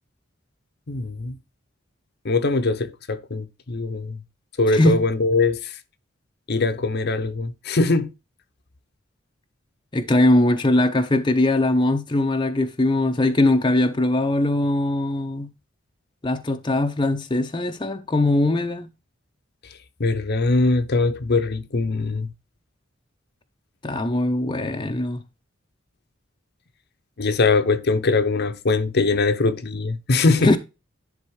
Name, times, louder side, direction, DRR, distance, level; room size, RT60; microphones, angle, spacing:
voice 1, 0.9-1.4 2.2-4.2 4.6-5.6 6.5-8.1 20.0-22.3 27.2-30.5, left 3 dB, 55° left, 0.8 m, -21 dB
voice 2, 4.7-5.0 9.9-15.5 16.2-18.9 23.8-25.2 30.4-30.6, left 1 dB, 25° left, 0.7 m, -21 dB
10.5 x 3.7 x 4.7 m
head